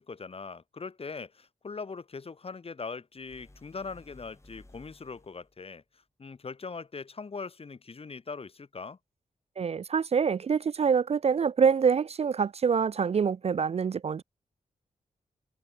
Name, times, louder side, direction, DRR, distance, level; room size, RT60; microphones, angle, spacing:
voice 1, 0.0-5.8 6.2-9.0, left 4 dB, 40° left, 0.8 m, -41 dB
sound 1, 3.2-5.6, left 1 dB, 20° left, 3.1 m, -56 dB
voice 2, 9.6-14.2, right 6 dB, 45° right, 0.4 m, -25 dB
cardioid pair, 50°, 15 cm